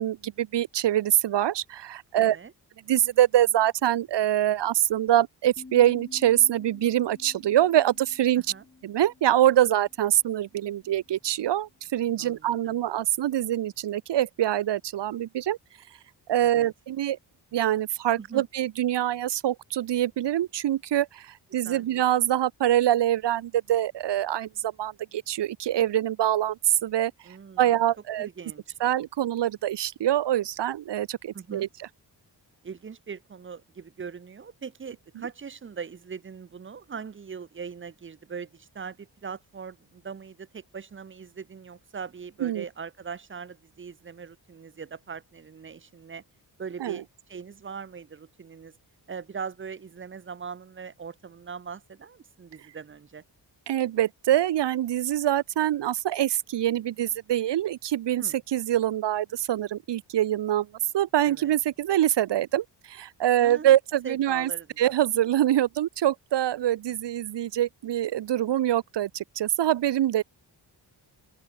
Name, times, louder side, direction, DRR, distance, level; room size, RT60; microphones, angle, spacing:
voice 1, 0.0-2.4 2.9-8.4 8.8-15.6 16.3-17.2 17.5-21.2 21.5-24.5 24.8-27.1 27.6-28.3 28.8-31.7 42.4-42.6 46.8-47.0 53.7-60.7 60.9-64.5 64.8-70.2, right 12 dB, 75° right, 0.8 m, -24 dB
voice 2, 2.1-2.5 8.4-8.6 12.2-12.8 16.4-16.7 18.2-18.5 21.6-21.8 27.2-27.8 28.2-28.8 31.3-31.7 32.6-46.2 46.6-48.8 49.1-53.2 58.2-58.4 61.2-61.6 63.4-63.8 64.0-64.9, right 6 dB, 30° right, 0.7 m, -40 dB
sound 1, 5.6-10.7, left 3 dB, 25° left, 2.8 m, -50 dB
open air
wide cardioid pair, 170°, 42 cm